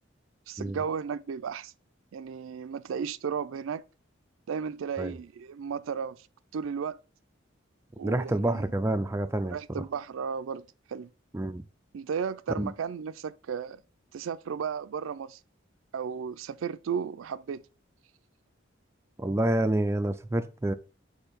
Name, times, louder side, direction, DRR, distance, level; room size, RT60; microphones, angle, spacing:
voice 1, 0.5-1.7 2.1-3.8 4.5-6.2 6.5-7.0 8.0-8.6 9.4-11.1 11.9-13.8 14.1-15.4 15.9-17.6, right 6 dB, 90° right, 0.4 m, -34 dB
voice 2, 8.0-9.9 11.3-11.6 12.6-12.7 19.2-20.7, right 1 dB, 15° right, 0.3 m, -28 dB
4.8 x 4.5 x 5.1 m
head